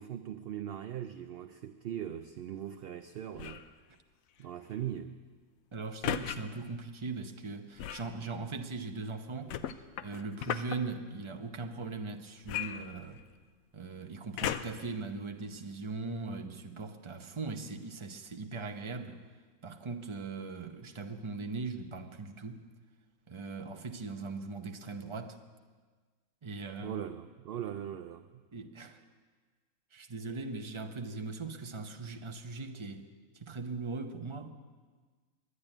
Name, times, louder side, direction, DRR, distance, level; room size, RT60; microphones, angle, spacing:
voice 1, 0.0-3.6 4.4-5.2 26.8-28.4, right 10 dB, 65° right, 0.6 m, -40 dB
sound 1, 3.3-3.7 6.0-6.4 7.8-8.1 9.5-10.8 12.4-13.4 14.4-14.9 15.6-15.7, left 10 dB, 85° left, 1.1 m, -36 dB
voice 2, 5.7-9.5 10.0-13.2 13.7-19.2 19.6-22.7 23.3-25.4 26.4-27.0 28.5-29.0 29.9-33.1 33.3-34.5, right 3 dB, 25° right, 0.7 m, -40 dB
11.0 x 10.5 x 9.8 m
omnidirectional pair, 1.4 m